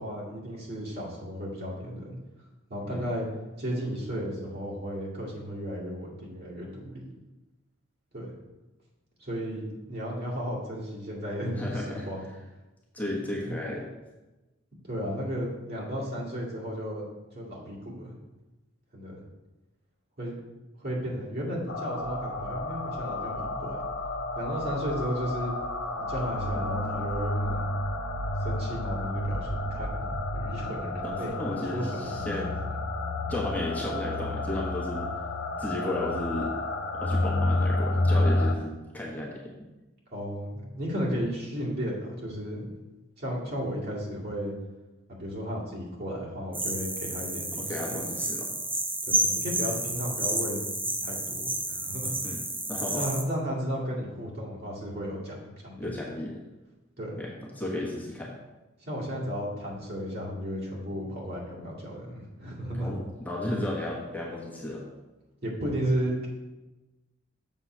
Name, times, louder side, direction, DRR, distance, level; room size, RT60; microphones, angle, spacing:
voice 1, 0.0-2.1 2.7-3.3 3.6-7.1 8.1-8.3 9.2-12.3 13.4-13.6 14.8-17.0 17.3-18.1 18.9-19.2 20.2-20.4 20.8-23.8 24.4-25.5 26.0-27.6 28.4-32.1 40.1-42.7 43.2-44.5 45.2-48.0 49.0-52.2 53.0-56.1 57.0-57.2 58.8-62.9 65.4-66.3, equal, 50° right, -5 dB, 2.2 m, -34 dB
voice 2, 11.5-12.1 12.9-13.9 31.0-32.5 33.3-35.1 35.6-36.6 36.9-39.5 47.5-48.5 52.2-52.4 52.7-53.1 55.8-56.4 57.2-58.3 62.7-64.8, left 1 dB, 10° left, -4 dB, 1.1 m, -34 dB
sound 1, 21.7-38.6, left 1 dB, 70° left, 0.7 m, -30 dB
sound 2, 46.5-53.2, right 2 dB, 10° right, 0.6 m, -31 dB
7.0 x 3.9 x 6.0 m, 1.1 s
head